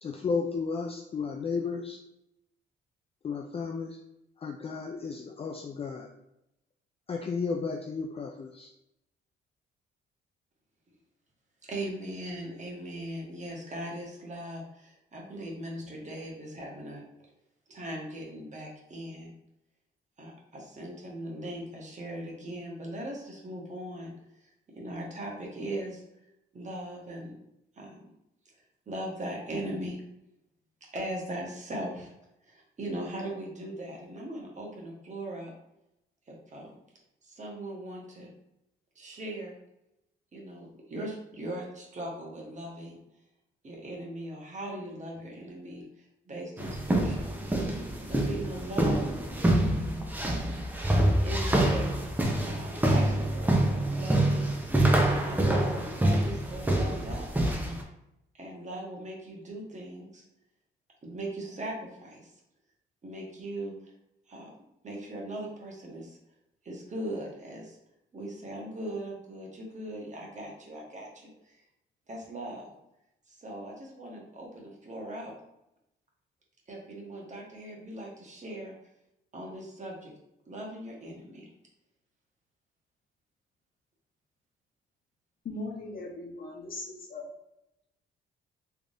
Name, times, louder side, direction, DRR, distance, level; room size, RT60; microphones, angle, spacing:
voice 1, 0.0-2.0 3.2-4.0 4.4-6.1 7.1-8.7, left 5 dB, 30° left, 2 dB, 0.4 m, -33 dB
voice 2, 11.6-17.0 17.7-19.3 20.2-24.1 24.7-26.0 26.5-27.3 27.8-28.0 28.9-30.0 30.9-32.1 32.4-35.5 36.3-36.7 37.2-38.3 38.9-39.5 40.3-43.0 43.6-45.8 46.3-47.2 47.7-49.1 51.2-51.9 52.4-54.6 55.0-57.6 58.3-60.2 61.0-62.3 63.0-63.7 64.3-64.5 64.8-66.2 66.6-67.8 68.1-71.6 72.1-72.7 73.3-75.3 76.7-78.7 79.3-80.1 80.5-81.5, right 1 dB, 35° right, -1 dB, 1.2 m, -39 dB
sound 1, 46.6-57.8, right 1 dB, 10° right, 0.7 m, -26 dB
voice 3, 85.4-87.3, left 2 dB, 45° left, -1 dB, 1.0 m, -39 dB
3.6 x 3.3 x 2.6 m, 0.86 s
cardioid pair, 90°, 20 cm